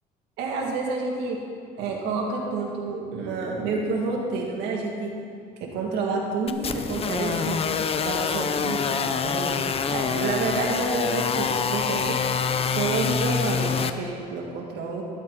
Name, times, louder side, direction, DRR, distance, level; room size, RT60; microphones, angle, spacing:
voice 1, 0.4-1.4 1.8-5.1 5.6-7.6 8.0-12.2 12.6-15.0, right 3 dB, 85° right, -1 dB, 2.5 m, -29 dB
sound 1, 6.5-13.9, left 6 dB, 35° left, 0.6 m, -26 dB
13.5 x 12.5 x 4.2 m, 2.3 s
cardioid pair, 110°, 17 cm